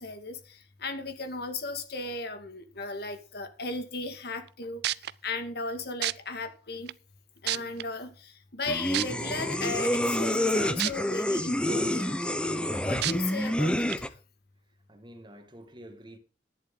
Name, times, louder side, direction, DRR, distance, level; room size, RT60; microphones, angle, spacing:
voice 1, 0.0-0.4 0.8-4.8 5.2-6.9 7.4-8.1 8.5-12.1 12.8-13.9, left 3 dB, 65° left, 2.1 m, -36 dB
sound 1, 4.5-4.6 4.8-5.1 6.0-6.1 6.9-7.0 7.5-7.8 8.9-9.0 10.8-10.9 11.4-11.5 13.0-13.1 13.9-14.0, right 14 dB, 65° right, 0.4 m, -28 dB
sound 2, 8.7-14.1, left 1 dB, 5° left, 0.9 m, -28 dB
voice 2, 12.6-13.2 14.9-16.2, right 1 dB, 25° right, 2.0 m, -49 dB
11.5 x 10.5 x 3.9 m
head